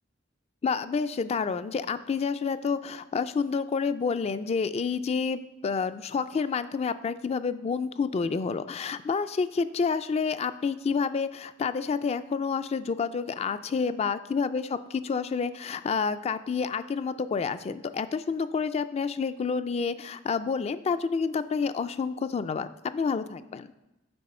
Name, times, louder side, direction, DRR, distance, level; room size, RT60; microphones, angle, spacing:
voice 1, 0.6-23.7, left 5 dB, 35° left, 13 dB, 0.3 m, -29 dB
7.8 x 5.4 x 4.2 m, 0.96 s
head